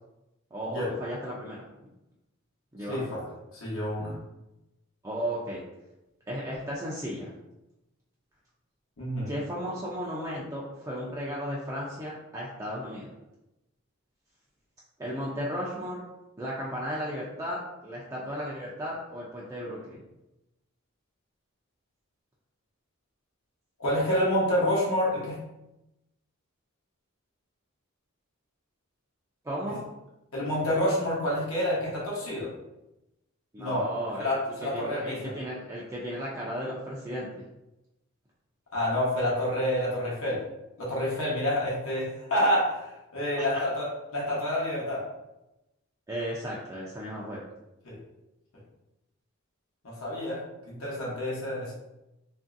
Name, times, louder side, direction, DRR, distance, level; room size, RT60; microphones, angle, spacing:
voice 1, 0.5-1.7 2.7-3.2 5.0-5.6 6.3-7.3 9.3-13.1 15.0-16.0 16.4-20.0 29.4-29.8 33.5-34.3 34.7-37.4 43.5-43.6 46.1-47.4, equal, 15° right, -5 dB, 0.3 m, -35 dB
voice 2, 2.9-3.2 3.5-4.2 9.0-9.3 23.8-25.3 30.3-32.5 33.6-33.8 34.2-35.3 38.7-40.4 40.8-42.9 43.1-43.9 44.1-45.0 47.8-48.0 49.8-50.4 50.7-51.7, left 1 dB, 75° left, -5 dB, 0.9 m, -28 dB
3.0 x 2.6 x 2.5 m, 0.94 s
head